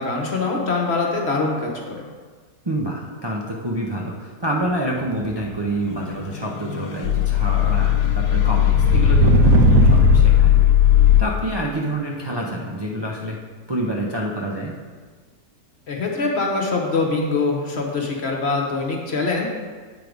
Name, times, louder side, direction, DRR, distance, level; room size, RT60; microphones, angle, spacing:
voice 1, 0.0-2.1 15.9-19.5, left 3 dB, 45° left, 0 dB, 1.2 m, -23 dB
voice 2, 2.6-10.5 11.2-13.4 13.7-14.8, right 1 dB, 35° right, -3 dB, 0.4 m, -27 dB
sound 1, 5.2-5.9 8.1-10.4, right 5 dB, 70° right, 1.0 m, -18 dB
sound 2, 5.9-11.2, left 13 dB, 90° left, 1.2 m, -17 dB
8.3 x 4.7 x 5.2 m, 1.5 s
omnidirectional pair, 1.7 m